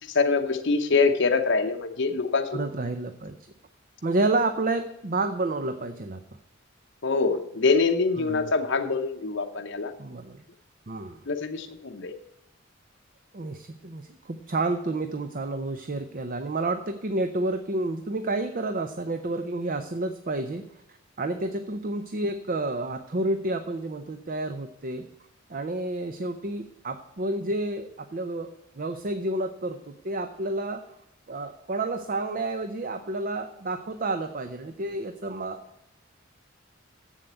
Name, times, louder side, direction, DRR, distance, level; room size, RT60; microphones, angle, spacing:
voice 1, 0.1-2.6 7.0-9.9 11.3-12.1, left 4 dB, 60° left, 6 dB, 0.8 m, -24 dB
voice 2, 2.5-3.3 4.0-6.2 8.2-8.5 10.0-10.4 10.9-11.2 13.3-20.6 21.2-25.1 25.5-30.8 31.3-35.6, right 2 dB, 45° right, 8 dB, 0.6 m, -30 dB
7.7 x 7.4 x 8.1 m, 0.81 s
head